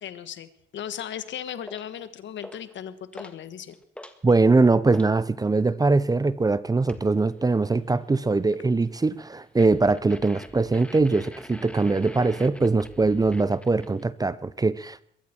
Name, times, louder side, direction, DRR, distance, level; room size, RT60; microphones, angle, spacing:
voice 1, 0.0-3.7, left 9 dB, 70° left, 1.3 m, -37 dB
sound 1, 1.7-1.9 2.4-2.8 3.1-3.4 3.7-5.2 6.9-7.1 9.6-14.0, left 1 dB, 5° left, 1.6 m, -45 dB
voice 2, 4.2-15.0, right 3 dB, 20° right, 0.7 m, -22 dB
22.5 x 13.5 x 4.4 m
cardioid pair, 90°, 20 cm